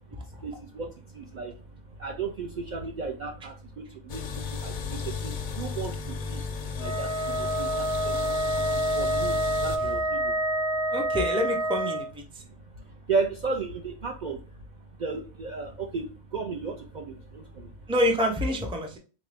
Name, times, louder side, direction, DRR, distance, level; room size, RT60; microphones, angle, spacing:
voice 1, 0.0-11.0 12.3-17.9, right 4 dB, 55° right, 2 dB, 0.5 m, -35 dB
sound 1, 4.1-9.8, left 5 dB, 60° left, 0.5 m, -34 dB
Wind instrument woodwind instrument, 6.8-12.1, right 1 dB, 70° right, 1.2 m, -28 dB
voice 2, 10.9-12.2 17.9-19.0, equal, 5° right, 2 dB, 0.5 m, -26 dB
3.8 x 2.6 x 3.3 m, 0.35 s
omnidirectional pair, 1.1 m